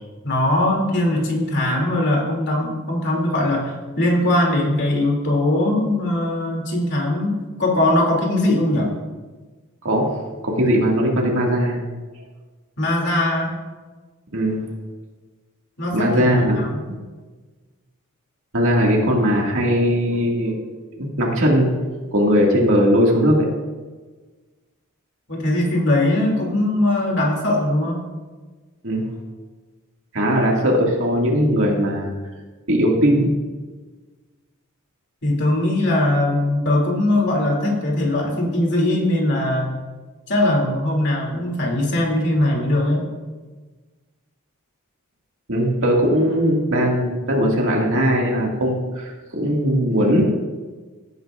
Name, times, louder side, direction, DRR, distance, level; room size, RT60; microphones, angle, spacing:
voice 1, 0.2-8.9 12.8-13.5 15.8-16.3 16.6-16.8 25.3-28.1 35.2-39.8 40.3-43.1, left 1 dB, 55° left, -2 dB, 2.6 m, -20 dB
voice 2, 9.8-10.1 10.4-11.8 13.0-13.1 14.3-14.6 15.9-16.6 18.5-20.6 21.0-21.7 22.1-23.5 28.8-29.0 30.1-32.1 32.7-33.3 45.5-50.2, equal, 65° right, -2 dB, 2.0 m, -19 dB
16.5 x 9.5 x 2.5 m, 1.3 s
head